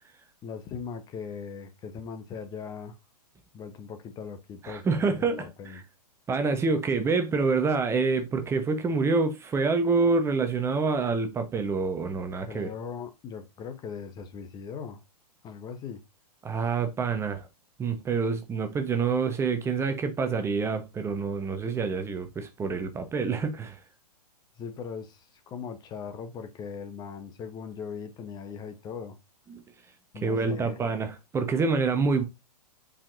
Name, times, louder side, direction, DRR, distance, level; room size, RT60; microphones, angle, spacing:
voice 1, 0.4-3.0 3.5-5.8 12.5-15.0 15.4-16.0 24.6-29.2 30.1-30.8, left 6 dB, 20° left, 0.9 m, -39 dB
voice 2, 4.6-5.5 5.7-5.8 6.3-12.7 16.4-17.5 17.8-23.8 29.5-29.6 30.2-32.2, right 4 dB, 15° right, 1.0 m, -27 dB
8.6 x 5.0 x 2.6 m
figure-of-eight pair, 110°, 21 cm